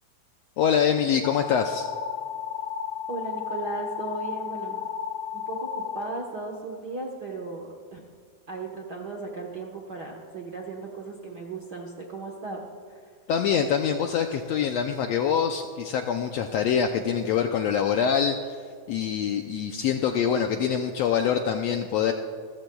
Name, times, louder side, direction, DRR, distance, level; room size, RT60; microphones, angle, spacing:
voice 1, 0.6-1.9 13.3-18.4 18.9-22.1, left 7 dB, 85° left, 5 dB, 1.5 m, -24 dB
sound 1, 1.2-6.0, left 8 dB, 50° left, 1.9 m, -33 dB
voice 2, 3.1-4.9 5.3-8.0 8.5-12.6 12.9-13.0, right 3 dB, 60° right, 0 dB, 1.1 m, -36 dB
27.5 x 15.0 x 2.3 m, 2.1 s
omnidirectional pair, 3.5 m